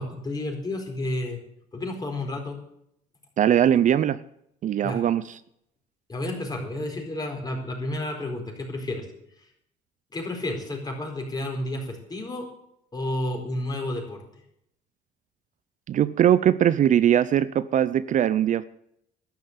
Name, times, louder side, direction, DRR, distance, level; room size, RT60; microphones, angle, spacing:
voice 1, 0.0-1.4 1.7-2.6 4.8-5.0 6.1-9.1 9.4-9.5 10.1-12.5 12.9-14.2, left 1 dB, 25° left, 2 dB, 4.5 m, -31 dB
voice 2, 3.4-4.2 4.6-5.2 15.9-18.6, right 10 dB, 50° right, 15 dB, 0.5 m, -20 dB
12.0 x 10.5 x 7.4 m, 0.74 s
cardioid pair, 110°, 17 cm